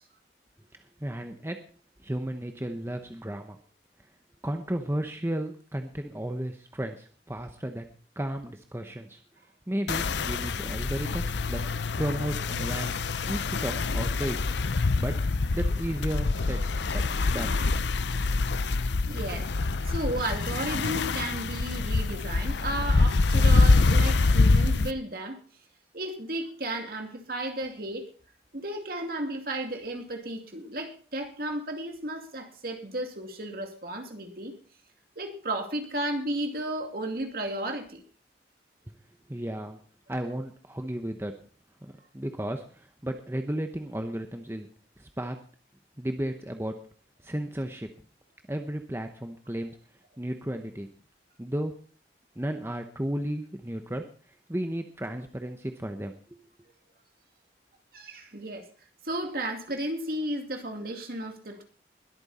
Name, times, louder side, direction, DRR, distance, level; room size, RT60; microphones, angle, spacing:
voice 1, 1.0-1.6 2.0-3.6 4.4-9.2 9.7-11.6 12.0-14.5 15.0-15.1 15.5-16.7 16.9-17.6 39.3-39.8 40.1-41.3 41.8-44.7 45.0-45.4 46.0-46.7 47.2-47.9 48.5-49.7 50.2-50.9 51.4-51.7 52.4-54.0 54.5-56.4, right 1 dB, 15° right, 6 dB, 0.9 m, -34 dB
sound 1, 9.9-24.9, left 3 dB, 80° left, 0.7 m, -25 dB
voice 2, 19.1-19.5 19.9-25.4 25.9-28.0 28.5-34.5 35.2-38.0 57.9-58.7 59.0-61.6, right 1 dB, 55° right, 4 dB, 2.6 m, -34 dB
21.0 x 8.8 x 4.2 m, 0.42 s
head